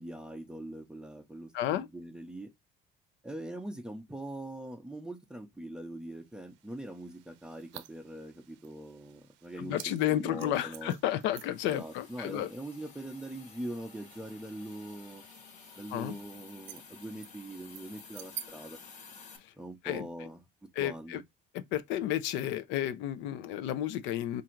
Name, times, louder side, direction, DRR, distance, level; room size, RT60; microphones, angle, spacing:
voice 1, 0.0-2.5 3.2-11.0 11.6-15.2 15.8-18.8 19.6-20.4 20.8-21.2, right 1 dB, 5° right, 0.5 m, -42 dB
voice 2, 1.5-1.9 9.6-12.5 15.9-16.2 19.4-19.5 19.8-20.1 20.8-21.2 21.5-24.4, left 12 dB, 75° left, 0.6 m, -32 dB
sound 1, 6.1-18.5, right 13 dB, 75° right, 0.5 m, -52 dB
Hiss, 11.5-19.4, left 5 dB, 40° left, 1.1 m, -53 dB
3.7 x 2.6 x 4.4 m
cardioid pair, 155°, 19 cm